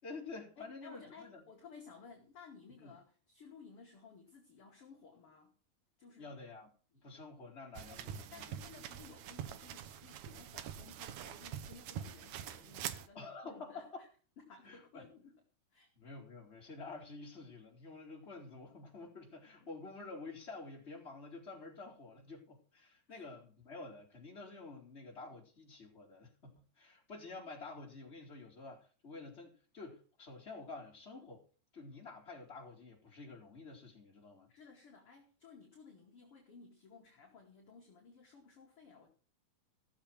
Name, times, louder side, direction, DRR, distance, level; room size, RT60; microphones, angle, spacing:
voice 1, 0.0-1.4 2.8-2.9 6.2-8.6 13.1-14.0 14.6-15.0 16.0-31.4 31.7-34.5, left 3 dB, 15° left, 4.0 m, -49 dB
voice 2, 0.6-5.5 6.0-6.3 6.9-7.0 7.9-14.1 14.4-15.4 15.7-15.9 19.6-19.7 23.1-23.3 34.5-39.1, left 5 dB, 40° left, 2.7 m, -57 dB
sound 1, 7.7-13.1, right 9 dB, 85° right, 1.6 m, -45 dB
16.0 x 7.3 x 6.1 m
omnidirectional pair, 4.5 m